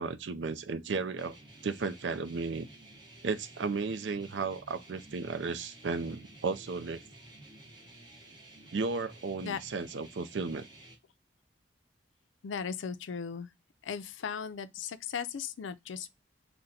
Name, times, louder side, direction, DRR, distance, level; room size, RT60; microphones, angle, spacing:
voice 1, 0.0-1.4 1.6-2.7 3.2-7.0 8.7-10.7, right 4 dB, 65° right, 0.5 m, -34 dB
sound 1, 1.2-11.0, right 1 dB, 25° right, 1.0 m, -53 dB
voice 2, 12.4-13.5 13.8-16.1, left 6 dB, 80° left, 0.4 m, -37 dB
3.8 x 2.2 x 4.0 m
head